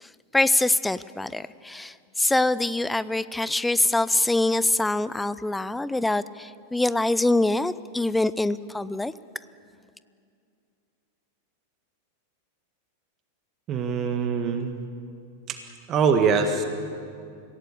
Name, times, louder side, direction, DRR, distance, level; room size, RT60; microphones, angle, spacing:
voice 1, 0.0-9.1, left 2 dB, 5° left, 16 dB, 0.6 m, -24 dB
voice 2, 13.7-14.7 15.5-15.6 15.9-16.6, right 5 dB, 30° right, 6 dB, 1.7 m, -23 dB
26.0 x 17.0 x 8.5 m, 2.4 s
figure-of-eight pair, 90°, 0 cm